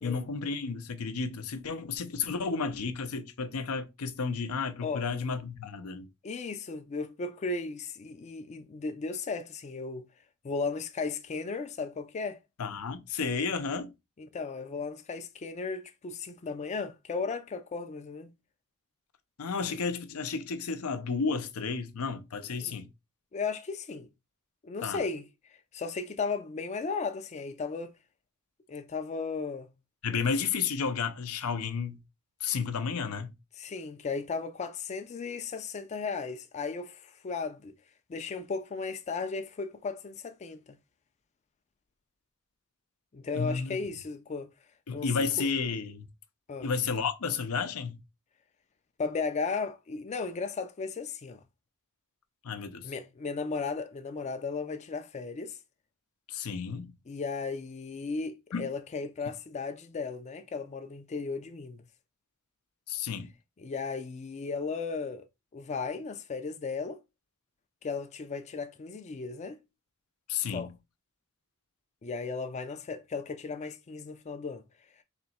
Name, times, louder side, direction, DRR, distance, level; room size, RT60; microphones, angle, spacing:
voice 1, 0.0-6.1 12.6-13.9 19.4-22.9 24.8-25.0 30.0-32.0 32.4-33.3 43.3-43.8 44.9-46.1 46.6-48.0 52.4-52.9 56.3-56.9 58.5-58.7 62.9-63.3 70.3-70.7, left 5 dB, 80° left, 0.6 m, -32 dB
voice 2, 6.2-10.1 10.4-12.4 14.2-18.3 19.7-19.8 22.6-22.8 23.3-24.1 24.6-25.3 25.7-27.9 28.7-29.7 33.6-37.7 38.1-40.8 43.1-44.5 44.9-45.3 46.5-46.7 49.0-51.4 52.8-55.6 57.1-61.8 63.6-65.2 65.5-67.0 67.8-69.6 70.5-70.7 72.0-74.6, left 4 dB, 30° left, 0.4 m, -35 dB
3.3 x 2.9 x 4.2 m
head